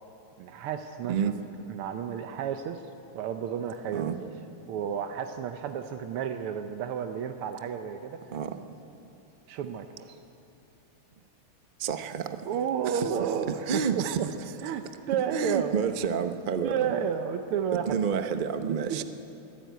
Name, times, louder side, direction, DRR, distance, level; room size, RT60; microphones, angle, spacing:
voice 1, 0.4-1.3 1.7-2.8 3.2-4.3 4.7-8.2 9.5-10.2 12.5-14.3 14.6-15.8 16.6-18.0 18.6-19.0, right 8 dB, 85° right, 7 dB, 1.7 m, -32 dB
voice 2, 11.8-12.5 12.9-13.1 13.5-14.2 15.3-16.7 17.9-19.0, right 7 dB, 65° right, 9 dB, 0.4 m, -29 dB
22.0 x 14.5 x 9.3 m, 2.8 s
omnidirectional pair, 2.4 m